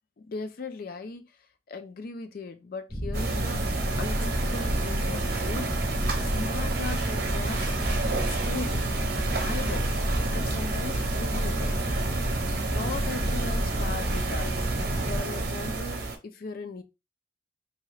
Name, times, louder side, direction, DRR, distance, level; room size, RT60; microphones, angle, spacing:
voice 1, 0.2-1.3 1.7-5.7 6.2-7.8 8.1-8.9 9.2-12.0 12.7-14.6 15.1-16.8, left 3 dB, 55° left, 0.4 m, -38 dB
sound 1, 2.9-15.2, equal, 10° left, 0.6 m, -30 dB
sound 2, 3.1-16.2, right 3 dB, 60° right, 0.7 m, -31 dB
2.9 x 2.3 x 3.1 m
head